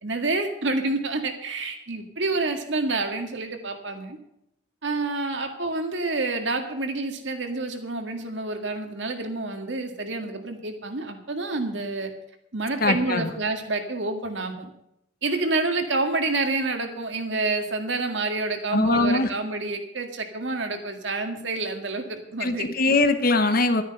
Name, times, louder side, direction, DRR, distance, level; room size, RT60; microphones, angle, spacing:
voice 1, 0.0-4.2 4.8-12.1 12.5-14.7 15.2-22.7, right 3 dB, 65° right, 5 dB, 1.9 m, -28 dB
voice 2, 12.8-13.3 18.7-19.3 22.4-23.8, left 2 dB, 50° left, 9 dB, 1.1 m, -21 dB
12.0 x 10.0 x 6.6 m, 0.79 s
head